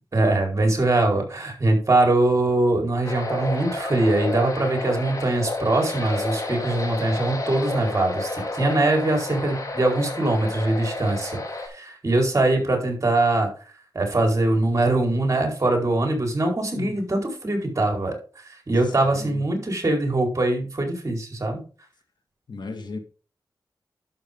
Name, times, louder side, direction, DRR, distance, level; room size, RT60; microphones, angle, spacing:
voice 1, 0.1-13.5 13.9-21.6, right 2 dB, 40° right, 4.5 m, -22 dB
sound 1, 3.0-11.7, left 2 dB, 45° left, 3.4 m, -30 dB
voice 2, 22.5-23.0, left 3 dB, 70° left, 2.0 m, -35 dB
11.5 x 7.3 x 3.7 m
wide cardioid pair, 70°, 8 cm